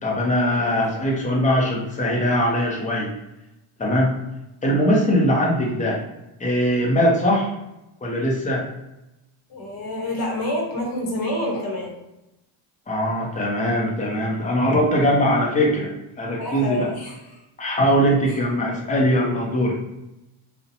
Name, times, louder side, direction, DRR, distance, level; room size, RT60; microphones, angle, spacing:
voice 1, 0.0-3.1 3.8-4.1 4.6-6.0 6.4-7.5 8.0-8.6 12.9-15.9 16.2-16.9 17.6-19.8, equal, 15° left, -2 dB, 0.4 m, -21 dB
voice 2, 9.5-11.9 16.4-17.4, left 1 dB, 45° left, 0 dB, 0.8 m, -28 dB
2.6 x 2.1 x 2.5 m, 0.93 s
cardioid pair, 140°, 50 cm